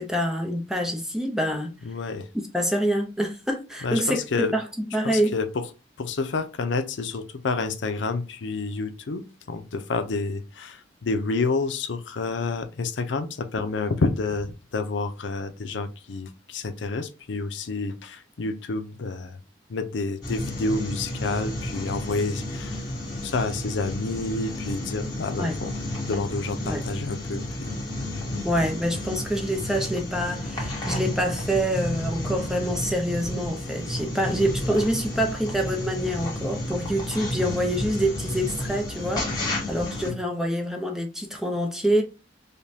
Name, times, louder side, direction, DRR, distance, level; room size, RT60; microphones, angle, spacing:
voice 1, 0.0-1.7 2.5-4.2 4.5-4.6 4.9-5.3 25.4-25.6 26.6-26.9 28.4-39.3 39.7-42.0, equal, 5° right, 0.6 m, -26 dB
voice 2, 1.8-2.3 3.8-4.5 5.0-5.7 6.0-9.2 9.5-19.4 19.7-22.8 23.2-25.7 26.0-27.7 28.3-28.4 40.1-40.2, left 3 dB, 80° left, 0.5 m, -29 dB
sound 1, 20.2-40.1, left 1 dB, 20° left, 1.3 m, -32 dB
5.1 x 2.2 x 2.7 m
head